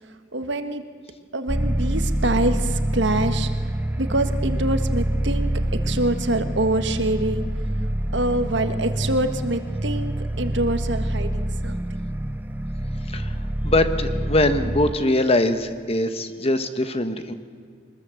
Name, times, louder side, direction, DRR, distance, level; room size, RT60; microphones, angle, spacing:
voice 1, 0.3-0.8 1.3-3.5 4.0-5.5 5.8-7.5 8.1-11.8, right 1 dB, 60° right, 8 dB, 1.6 m, -25 dB
sound 1, 1.5-14.9, right 1 dB, 10° right, 0.5 m, -26 dB
voice 2, 13.0-13.4 13.6-17.3, left 1 dB, 30° left, 9 dB, 1.3 m, -22 dB
24.0 x 20.5 x 7.8 m, 2.1 s
head